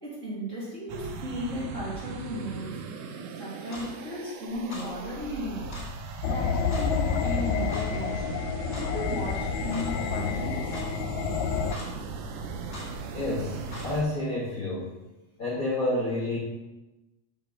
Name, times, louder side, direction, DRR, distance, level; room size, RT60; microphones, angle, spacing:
voice 1, 0.0-2.8 3.3-5.7 6.2-8.4 8.7-10.7, equal, 30° right, -7 dB, 1.6 m, -35 dB
sound 1, 0.9-14.0, right 4 dB, 80° right, 1.5 m, -38 dB
Clock, 3.7-3.9 4.7-4.9 5.7-5.9 6.7-6.9 7.7-7.9 8.7-8.9 9.7-9.9 10.7-10.9 11.7-11.9 12.7-12.9 13.7-13.9, left 2 dB, 35° left, 1.1 m, -41 dB
sound 2, 6.2-11.7, left 6 dB, 80° left, 1.7 m, -29 dB
voice 2, 13.1-14.9 15.4-16.4, left 1 dB, 55° left, -7 dB, 0.9 m, -29 dB
5.8 x 4.0 x 5.9 m, 1.0 s
omnidirectional pair, 3.6 m